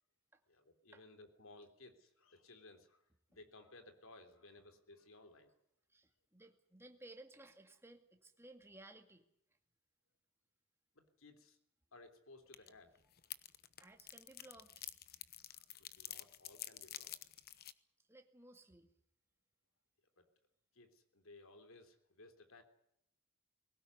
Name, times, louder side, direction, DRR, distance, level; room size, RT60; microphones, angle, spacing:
voice 1, 0.5-5.6 10.9-11.6 11.9-12.9 15.5-17.2 20.2-20.3 20.7-22.6, left 2 dB, 65° left, 7 dB, 3.4 m, -60 dB
voice 2, 5.9-9.2 13.8-14.8 18.1-18.9, right 2 dB, 10° right, 4 dB, 2.2 m, -58 dB
sound 1, 12.5-12.7 13.0-17.7, left 13 dB, 45° left, 1.0 m, -49 dB
21.0 x 18.0 x 9.6 m, 0.75 s
head